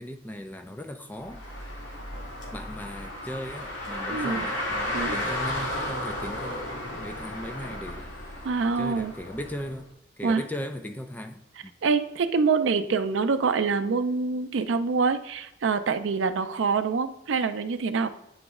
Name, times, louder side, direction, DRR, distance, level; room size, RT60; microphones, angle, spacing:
voice 1, 0.0-1.4 2.5-8.1 8.8-9.9 10.2-11.7, left 1 dB, 10° left, 0.3 m, -37 dB
Car, 1.2-9.7, left 1 dB, 75° left, 1.6 m, -34 dB
voice 2, 4.1-4.5 4.9-5.2 8.4-9.1 10.2-10.4 11.8-18.1, right 4 dB, 70° right, 0.4 m, -25 dB
8.7 x 3.0 x 3.6 m
head